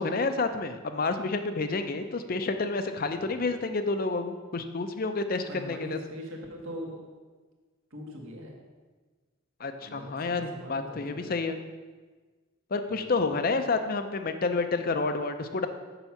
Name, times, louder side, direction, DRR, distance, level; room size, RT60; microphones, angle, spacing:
voice 1, 0.0-6.0 9.6-11.6 12.7-15.7, left 3 dB, 45° left, 8 dB, 0.5 m, -29 dB
voice 2, 5.5-7.1 7.9-8.6 9.8-11.3 12.9-13.3, equal, 75° right, 0 dB, 1.6 m, -42 dB
7.0 x 5.8 x 5.8 m, 1.4 s
head